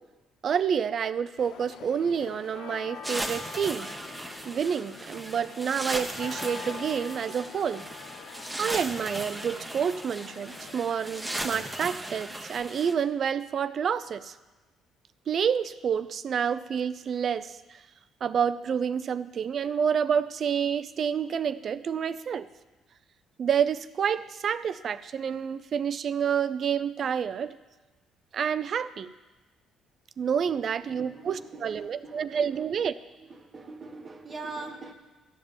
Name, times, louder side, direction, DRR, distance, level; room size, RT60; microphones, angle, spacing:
voice 1, 0.4-3.9 4.5-7.9 8.6-14.3 15.3-17.8 18.2-22.5 23.4-27.6 28.3-29.1 30.2-33.0, right 7 dB, 55° right, 14 dB, 0.5 m, -28 dB
sound 1, 1.4-11.6, left 7 dB, 75° left, 0.6 m, -45 dB
sound 2, 3.0-12.9, right 1 dB, 10° right, 1.1 m, -37 dB
voice 2, 30.5-32.7 33.2-34.9, right 3 dB, 40° right, 4 dB, 1.4 m, -43 dB
13.5 x 5.1 x 8.8 m, 1.2 s
supercardioid pair, 75°, 0 cm